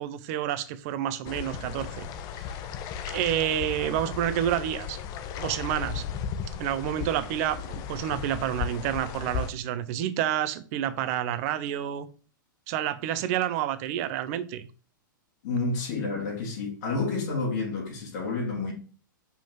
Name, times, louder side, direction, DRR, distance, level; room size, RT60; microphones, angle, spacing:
voice 1, 0.0-2.1 2.4-2.6 3.0-5.0 5.3-6.0 6.6-12.1 12.7-14.6, right 11 dB, 45° right, 0.8 m, -29 dB
sound 1, 1.2-9.5, left 7 dB, 35° left, 0.8 m, -35 dB
voice 2, 15.4-18.7, left 3 dB, 55° left, 3.1 m, -29 dB
5.5 x 5.1 x 3.8 m
hypercardioid pair, 110°, 11 cm